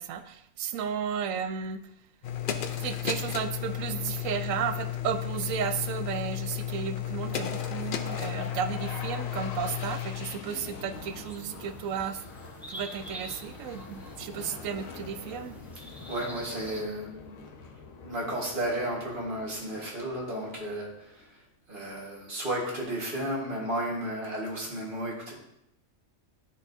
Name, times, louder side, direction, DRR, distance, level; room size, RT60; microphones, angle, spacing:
voice 1, 0.0-1.8 2.8-12.2 12.7-15.6, right 8 dB, 85° right, 8 dB, 1.0 m, -33 dB
sound 1, 2.2-10.3, left 11 dB, 60° left, 0.5 m, -33 dB
sound 2, 7.1-21.3, left 5 dB, 90° left, 1.2 m, -44 dB
sound 3, 10.9-16.9, equal, ahead, 0.8 m, -46 dB
voice 2, 16.1-17.5 18.0-21.4 21.7-25.3, right 1 dB, 40° right, -3 dB, 1.8 m, -33 dB
11.5 x 4.2 x 2.7 m, 0.79 s
omnidirectional pair, 1.4 m